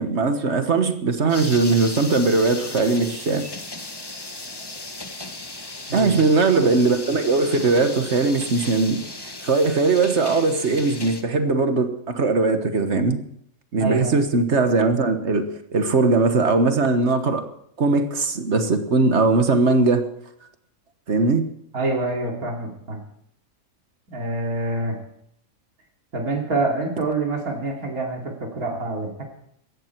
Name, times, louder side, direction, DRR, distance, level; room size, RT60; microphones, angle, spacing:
voice 1, 0.0-3.4 5.9-9.0 9.4-13.2 13.7-17.5 17.8-20.1 21.1-21.5, right 3 dB, 55° right, 8 dB, 1.5 m, -20 dB
sound 1, 1.3-11.2, left 2 dB, 20° left, 1.0 m, -36 dB
voice 2, 5.9-6.2 13.8-14.2 21.7-23.0 24.1-25.0 26.1-29.2, right 2 dB, 85° right, 0 dB, 3.1 m, -26 dB
17.5 x 14.0 x 4.5 m, 0.72 s
omnidirectional pair, 1.5 m